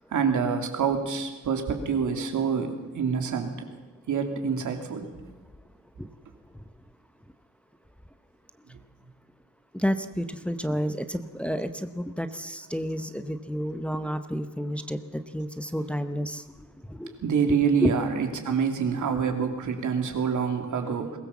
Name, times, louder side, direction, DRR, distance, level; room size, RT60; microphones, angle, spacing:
voice 1, 0.1-3.7 4.1-5.3 8.7-8.8 17.2-21.2, right 6 dB, 85° right, 4 dB, 3.0 m, -26 dB
voice 2, 9.8-15.0 15.3-16.4 17.0-17.1 17.5-17.9, equal, 5° left, 9 dB, 0.9 m, -30 dB
22.0 x 19.5 x 7.3 m, 1.3 s
wide cardioid pair, 165°, 29 cm